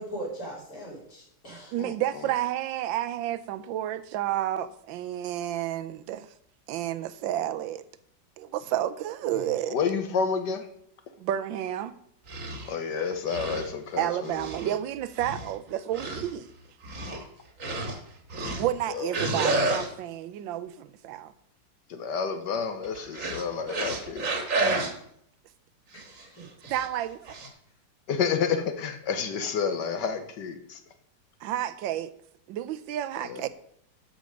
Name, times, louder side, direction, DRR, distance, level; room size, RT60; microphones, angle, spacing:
voice 1, 0.0-1.7 25.9-26.7, right 1 dB, 45° left, 3.8 m, -40 dB
voice 2, 1.7-6.3 6.7-7.8 8.4-9.8 11.2-12.0 14.0-16.5 18.4-21.3 26.7-27.5 31.4-32.1 32.5-33.5, right 12 dB, 80° right, 1.3 m, -31 dB
voice 3, 9.7-10.6 12.7-14.5 18.9-19.1 21.9-24.3 28.1-30.8 33.2-33.4, left 6 dB, 70° left, 1.4 m, -29 dB
sound 1, 12.3-12.7 13.3-13.7 14.2-14.7 15.2-15.5 15.9-16.3 16.8-17.2 17.6-18.0 18.3-18.8 19.1-19.9 22.8-24.9 26.0-26.2 26.6-26.9 27.3-27.5, right 2 dB, 45° right, 1.7 m, -30 dB
13.0 x 5.1 x 5.1 m
omnidirectional pair, 2.1 m